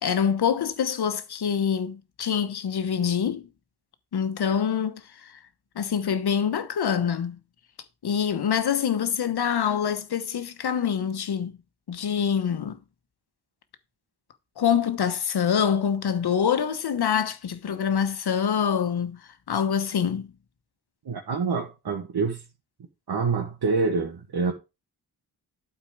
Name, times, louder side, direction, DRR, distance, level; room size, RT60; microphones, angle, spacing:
voice 1, 0.0-3.5 4.1-5.3 5.7-7.4 8.0-11.5 11.9-12.8 14.6-19.2 19.5-20.3, left 7 dB, 70° left, 1.2 m, -25 dB
voice 2, 21.1-22.4 23.1-24.5, right 4 dB, 65° right, 1.9 m, -26 dB
12.0 x 4.6 x 4.7 m
wide cardioid pair, 130°, 40 cm